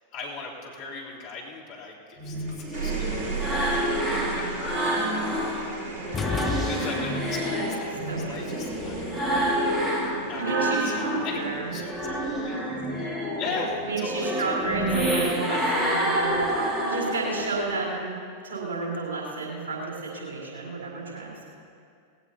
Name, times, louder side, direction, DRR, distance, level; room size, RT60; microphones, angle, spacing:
voice 1, 0.1-3.1 4.3-4.8 5.1-9.4 9.9-12.6 13.4-15.0 15.5-15.7, left 4 dB, 45° left, -5 dB, 3.5 m, -39 dB
sound 1, 2.2-5.6 6.0-11.4 11.7-17.6, equal, 10° right, 2.7 m, -28 dB
sound 2, 2.5-15.1 16.3-16.8, right 4 dB, 45° right, 3.4 m, -36 dB
sound 3, 6.1-7.4, left 7 dB, 20° left, 0.5 m, -31 dB
voice 2, 7.9-8.6 10.4-11.7 13.4-13.6 13.8-18.1 18.4-21.5, right 3 dB, 60° right, -3 dB, 4.2 m, -32 dB
19.5 x 17.0 x 2.9 m, 2.3 s
figure-of-eight pair, 90°, 0 cm